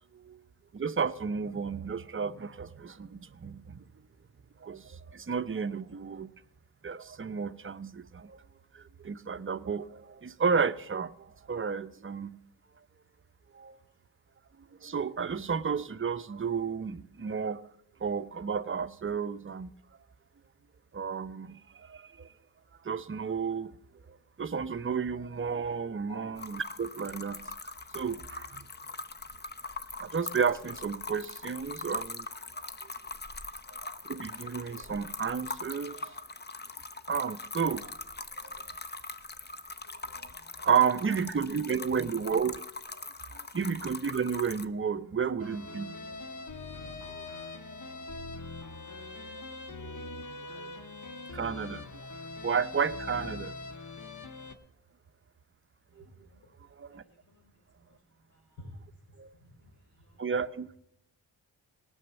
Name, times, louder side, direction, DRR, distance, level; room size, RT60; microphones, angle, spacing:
voice 1, 0.7-3.9 4.6-6.3 6.8-8.4 8.7-12.4 13.5-13.8 14.8-17.6 18.0-19.7 20.9-22.3 22.8-23.7 24.1-27.4 27.9-28.7 30.0-32.3 33.8-36.1 37.1-37.9 38.4-38.5 40.2-40.3 40.6-42.6 43.5-46.0 46.8-47.2 50.6-50.7 51.3-51.9 52.4-53.6 56.0-56.1 56.8-57.0 59.2-59.3 60.2-60.8, right 6 dB, 30° right, 0.7 m, -32 dB
sound 1, 26.4-44.6, left 3 dB, 25° left, 0.8 m, -42 dB
voice 2, 39.7-40.7 42.9-43.0 47.1-49.2 55.9-56.5 56.8-58.8 59.4-60.2, equal, 90° left, 4.5 m, -55 dB
sound 2, 45.4-54.5, left 3 dB, 45° left, 1.5 m, -42 dB
17.5 x 6.4 x 7.0 m
supercardioid pair, 45°, 43 cm